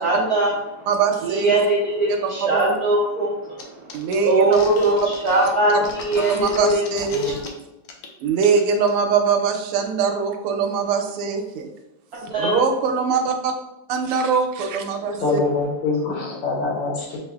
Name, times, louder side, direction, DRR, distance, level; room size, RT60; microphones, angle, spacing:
voice 1, 0.0-0.5 1.2-3.3 4.2-6.8 7.1-7.3 12.3-12.5 15.2-15.4, right 2 dB, 75° right, -4 dB, 0.8 m, -20 dB
voice 2, 0.9-1.5 2.4-2.7 3.9-4.6 5.7-5.8 6.3-7.4 8.2-11.7 12.4-13.5 13.9-15.4, right 5 dB, 90° right, 4 dB, 1.5 m, -22 dB
sound 1, 3.6-3.7 3.9-7.5 7.8-8.1 8.4-8.9, left 3 dB, 85° left, 1.6 m, -36 dB
voice 3, 15.2-17.2, left 3 dB, 70° left, 0 dB, 1.4 m, -24 dB
6.3 x 2.5 x 2.3 m, 0.96 s
omnidirectional pair, 2.4 m